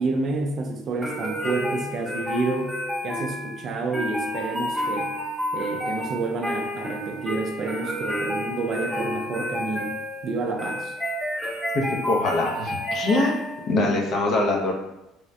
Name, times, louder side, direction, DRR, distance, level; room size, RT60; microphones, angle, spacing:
voice 1, 0.0-2.7 3.0-5.1 5.5-10.0 10.2-11.0, right 3 dB, 40° right, 3 dB, 0.4 m, -29 dB
sound 1, 1.0-13.8, left 1 dB, 5° left, 0.6 m, -30 dB
voice 2, 11.7-13.3 13.7-14.7, left 2 dB, 45° left, 0 dB, 0.6 m, -23 dB
3.3 x 2.1 x 2.6 m, 0.90 s
cardioid pair, 140°, 0 cm